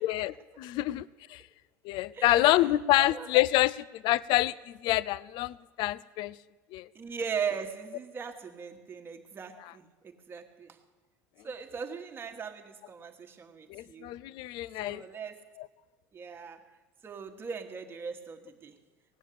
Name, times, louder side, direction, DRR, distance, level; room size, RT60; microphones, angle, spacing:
voice 1, 0.0-1.4 1.8-6.4 6.7-6.9 13.7-15.0 15.6-15.7, left 16 dB, 60° left, 20 dB, 0.4 m, -27 dB
voice 2, 2.1-2.7 3.0-3.3 6.9-10.8 11.4-14.1 14.8-15.5 16.1-16.7 17.0-18.8, right 6 dB, 25° right, 4 dB, 1.4 m, -39 dB
18.0 x 7.3 x 8.4 m, 1.3 s
supercardioid pair, 125°, 9 cm